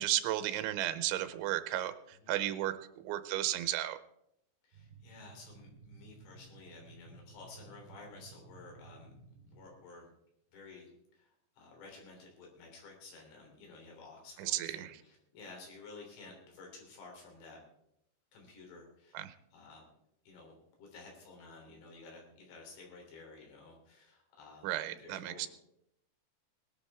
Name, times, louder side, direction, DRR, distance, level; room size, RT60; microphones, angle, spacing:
voice 1, 0.0-4.0 14.4-15.0 19.1-19.3 24.6-25.5, right 13 dB, 90° right, 11 dB, 3.1 m, -34 dB
voice 2, 4.6-9.1 9.5-10.1 10.5-10.9 11.1-17.6 18.3-19.2 19.5-19.8 20.3-25.5, left 3 dB, 70° left, 0 dB, 5.5 m, -53 dB
sound 1, 4.7-9.7, right 4 dB, 60° right, 6.1 m, -56 dB
19.5 x 11.5 x 3.6 m, 0.77 s
omnidirectional pair, 5.3 m